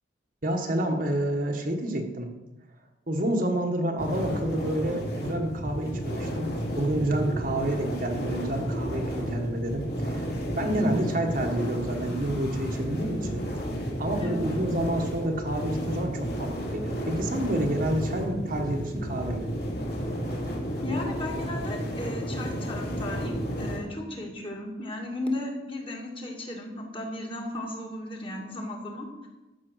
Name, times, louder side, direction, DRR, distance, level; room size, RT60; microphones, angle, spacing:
voice 1, 0.4-2.3 3.1-13.4 14.0-19.5, right 1 dB, 45° right, 3 dB, 1.4 m, -29 dB
sound 1, 4.0-23.8, equal, 55° left, 2.8 m, -32 dB
voice 2, 10.6-11.0 14.2-14.5 20.8-29.1, left 1 dB, 25° left, 0 dB, 2.0 m, -35 dB
14.0 x 6.2 x 6.3 m, 1.0 s
head